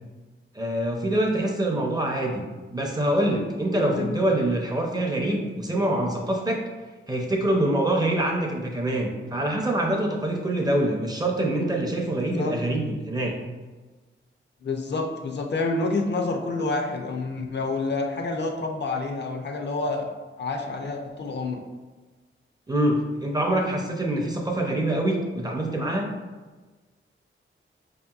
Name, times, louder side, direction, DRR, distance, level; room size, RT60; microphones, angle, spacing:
voice 1, 0.5-2.5 2.7-6.6 7.1-13.3 22.7-26.1, right 1 dB, 20° right, 0 dB, 0.5 m, -25 dB
voice 2, 3.7-4.1 12.4-12.6 14.6-20.1 20.4-21.6, left 3 dB, 55° left, 3 dB, 0.5 m, -28 dB
4.9 x 2.8 x 2.3 m, 1.3 s
wide cardioid pair, 125°, 21 cm